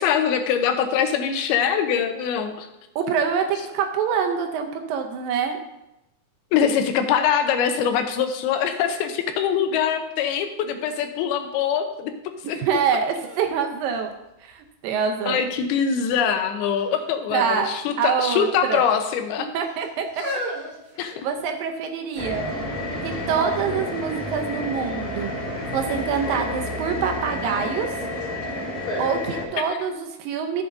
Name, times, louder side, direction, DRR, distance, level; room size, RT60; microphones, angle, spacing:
voice 1, 0.0-2.7 6.5-12.1 12.5-12.6 15.3-19.5 21.0-21.3 29.6-29.7, left 8 dB, 90° left, 7 dB, 2.7 m, -23 dB
voice 2, 3.0-5.6 12.4-14.1 14.4-15.4 17.3-17.7 18.0-18.8 19.5-20.2 21.2-22.5 23.0-25.3 25.7-27.9 29.0-30.6, right 7 dB, 75° right, 4 dB, 2.3 m, -25 dB
sound 1, 12.6-12.7 13.2-14.7 15.3-15.8 16.6-17.0 17.3-17.4 18.3-18.9 19.6-21.7 22.4-22.5, equal, 40° right, 0.7 m, -36 dB
sound 2, 22.2-29.5, left 1 dB, 35° left, 3.6 m, -30 dB
14.0 x 7.2 x 2.7 m, 0.90 s
omnidirectional pair, 4.4 m